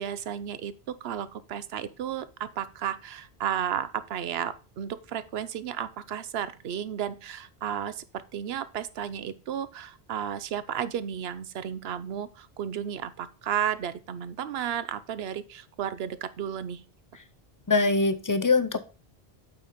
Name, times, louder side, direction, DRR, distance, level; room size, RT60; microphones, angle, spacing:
voice 1, 0.0-16.8, right 9 dB, 70° right, 15 dB, 0.9 m, -33 dB
voice 2, 17.7-18.8, left 3 dB, 30° left, 11 dB, 0.4 m, -23 dB
8.6 x 4.2 x 5.0 m, 0.35 s
omnidirectional pair, 1.1 m